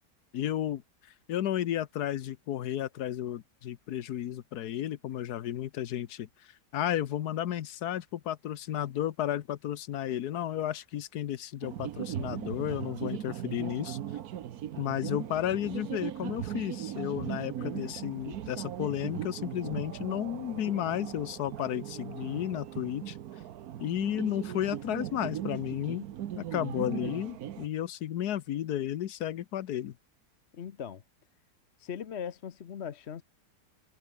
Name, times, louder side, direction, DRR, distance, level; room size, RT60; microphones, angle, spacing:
voice 1, 0.3-0.8 1.3-14.0 14.8-23.2 23.8-26.0 26.4-29.9, left 11 dB, 75° left, 1.4 m, -33 dB
sound 1, 11.6-27.7, right 11 dB, 70° right, 1.3 m, -39 dB
voice 2, 17.6-17.9 26.7-27.1 30.5-31.0 31.8-33.2, left 8 dB, 50° left, 1.0 m, -40 dB
omnidirectional pair, 1.7 m